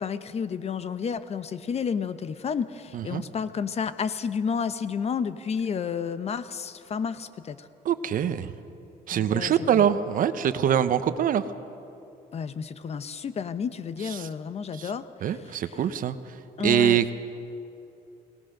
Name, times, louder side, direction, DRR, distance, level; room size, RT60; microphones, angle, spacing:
voice 1, 0.0-7.7 9.1-9.8 12.3-15.0 16.6-17.0, left 6 dB, 40° left, 13 dB, 0.8 m, -31 dB
voice 2, 7.8-8.5 9.1-11.4 14.0-14.3 14.7-14.9 15.2-16.2 16.6-17.1, right 9 dB, 55° right, 12 dB, 0.9 m, -24 dB
22.0 x 19.0 x 6.5 m, 2.7 s
cardioid pair, 110°, 17 cm